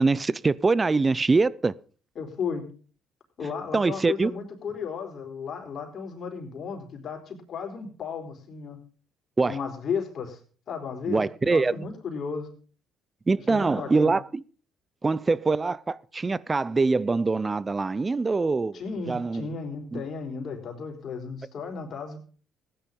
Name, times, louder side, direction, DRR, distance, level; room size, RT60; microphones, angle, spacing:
voice 1, 0.0-1.7 3.7-4.3 9.4-9.6 11.1-11.8 13.3-14.4 15.0-18.8 19.1-19.5 19.9-20.0, right 3 dB, 25° right, 0.7 m, -24 dB
voice 2, 2.2-2.7 3.4-8.8 9.4-10.4 10.7-12.5 13.5-14.1 18.7-22.2, left 5 dB, 55° left, 4.3 m, -34 dB
15.5 x 10.0 x 5.4 m
supercardioid pair, 75°, 0 cm